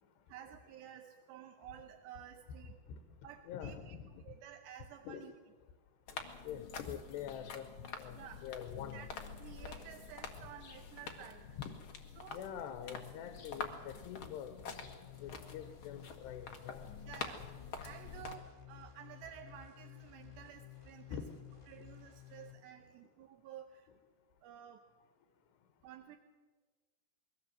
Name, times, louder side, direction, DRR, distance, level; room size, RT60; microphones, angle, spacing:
voice 1, 0.3-2.8 3.2-5.3 8.1-8.5 8.9-9.1 9.4-11.6 12.2-12.5 17.1-21.2 21.7-23.9 24.4-24.9 25.8-26.2, right 10 dB, 85° right, 6 dB, 3.1 m, -53 dB
voice 2, 3.5-4.2 5.0-5.3 6.4-7.7 7.9-9.0 12.3-14.5 15.2-16.9 21.1-21.4, left 9 dB, 85° left, 7 dB, 3.3 m, -45 dB
sound 1, 6.1-18.3, left 5 dB, 55° left, 1.5 m, -47 dB
sound 2, 14.7-22.5, left 10 dB, 10° left, 2.1 m, -54 dB
22.5 x 17.5 x 7.8 m, 1.3 s
omnidirectional pair, 4.8 m